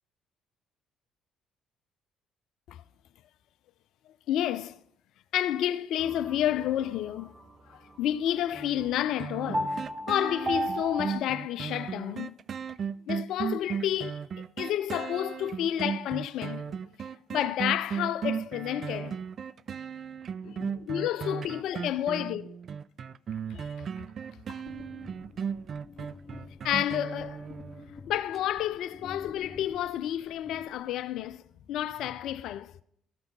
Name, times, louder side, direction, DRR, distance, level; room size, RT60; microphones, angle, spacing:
voice 1, 4.1-4.8 5.3-7.4 7.7-9.8 10.1-12.4 13.1-14.2 14.6-19.2 20.4-22.6 23.5-23.7 24.5-24.6 26.6-27.5 28.1-31.4 31.7-32.7, left 11 dB, 65° left, 0.4 m, -30 dB
sound 1, 6.0-11.2, right 1 dB, 30° right, 1.0 m, -36 dB
sound 2, 9.2-27.9 28.3-28.4, right 7 dB, 50° right, 0.3 m, -36 dB
sound 3, 24.7-31.3, left 4 dB, 30° left, 1.8 m, -49 dB
14.0 x 5.7 x 5.4 m
hypercardioid pair, 55°, 0 cm